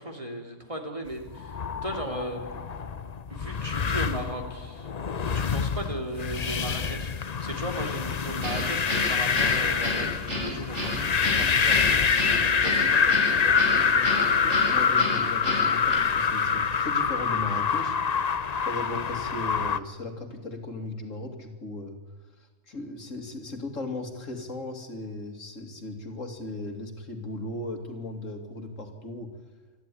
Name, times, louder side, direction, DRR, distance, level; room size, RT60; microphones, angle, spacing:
voice 1, 0.0-2.5 3.3-4.9 5.3-12.1 12.5-13.9, right 1 dB, 25° right, 3 dB, 2.9 m, -37 dB
sound 1, 1.3-19.8, left 6 dB, 40° left, 0.7 m, -26 dB
Guitar, 8.4-16.0, equal, 75° right, 7.2 m, -32 dB
voice 2, 13.8-18.0 18.6-22.0 22.7-29.3, left 2 dB, 75° left, 5 dB, 2.9 m, -37 dB
27.0 x 12.0 x 9.9 m, 1.4 s
omnidirectional pair, 1.3 m